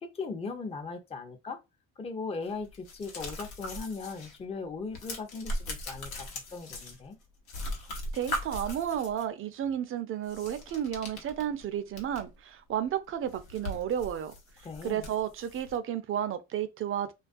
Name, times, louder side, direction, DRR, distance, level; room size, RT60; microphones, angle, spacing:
voice 1, 0.0-1.6 2.0-7.2 14.6-15.1, left 4 dB, 20° left, 0.5 m, -38 dB
sound 1, 2.5-4.4 4.7-7.2 7.5-9.2 10.2-12.4 12.7-12.8 13.2-15.8, left 1 dB, 90° left, 0.8 m, -39 dB
voice 2, 8.1-14.3 14.8-17.1, right 10 dB, 45° right, 0.5 m, -32 dB
2.3 x 2.2 x 2.5 m
supercardioid pair, 80°, 29 cm